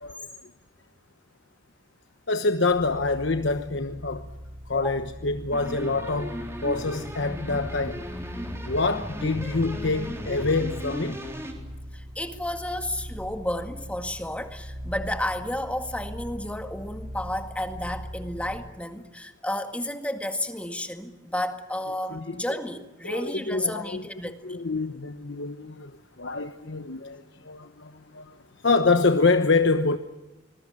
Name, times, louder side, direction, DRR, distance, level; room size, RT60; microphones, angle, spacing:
voice 1, 0.0-0.5 2.3-4.3 4.7-8.0 8.6-11.2 22.1-22.4 23.0-24.1 24.4-30.0, left 3 dB, 65° left, 1.1 m, -26 dB
sound 1, 2.7-18.8, equal, 65° right, 1.9 m, -41 dB
sound 2, 5.5-11.5, equal, 15° right, 3.8 m, -36 dB
voice 2, 11.9-24.6, left 1 dB, 5° left, 1.9 m, -32 dB
26.0 x 21.0 x 8.8 m
head